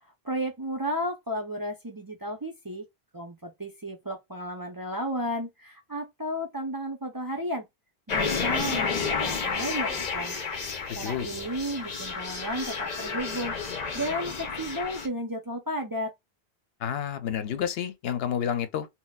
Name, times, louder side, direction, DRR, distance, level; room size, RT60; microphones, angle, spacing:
voice 1, 0.0-2.8 3.1-7.7 8.1-10.4 10.9-16.1, equal, 30° right, 0.4 m, -33 dB
sound 1, 8.1-15.1, left 5 dB, 45° left, 0.7 m, -31 dB
voice 2, 10.9-11.3 16.8-18.9, left 9 dB, 75° left, 0.8 m, -30 dB
4.0 x 2.1 x 2.2 m
omnidirectional pair, 1.1 m